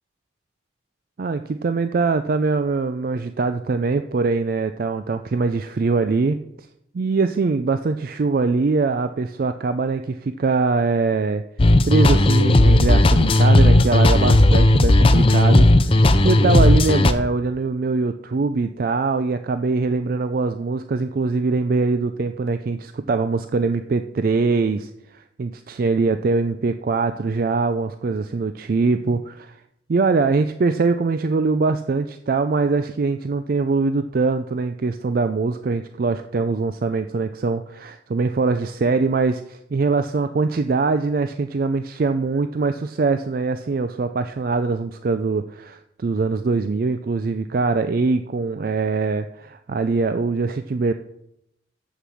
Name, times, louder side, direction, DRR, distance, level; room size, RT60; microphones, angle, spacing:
voice 1, 1.2-6.4 6.9-11.4 11.9-15.7 16.2-29.6 29.9-50.9, right 4 dB, 50° right, 9 dB, 0.4 m, -22 dB
sound 1, 11.6-17.1, left 1 dB, 30° left, 0.5 m, -14 dB
7.4 x 6.8 x 6.2 m, 0.78 s
head